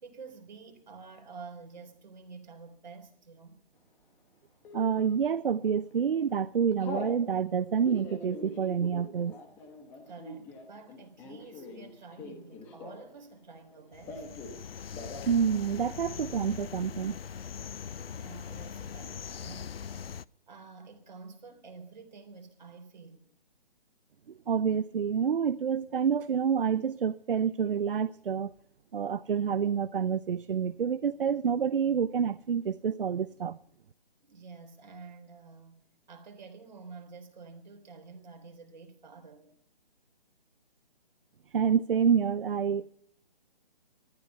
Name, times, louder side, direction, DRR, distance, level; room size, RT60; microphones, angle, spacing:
voice 1, 0.0-3.6 10.1-14.3 18.1-19.7 20.5-23.3 34.2-35.8 36.1-39.5, right 4 dB, 50° right, 3.7 m, -49 dB
Telephone, 4.6-5.2 5.7-6.0 6.3-7.2 7.7-13.2 13.5-14.6 14.9-15.3 15.6-15.7 16.0-16.6, left 2 dB, 5° left, 1.2 m, -43 dB
voice 2, 4.7-9.4 15.3-17.2 24.3-28.5 28.9-33.6 41.5-42.9, right 7 dB, 65° right, 0.7 m, -28 dB
sound 1, 13.9-20.2, left 7 dB, 75° left, 0.6 m, -41 dB
19.0 x 13.0 x 5.6 m
hypercardioid pair, 170°, 30 cm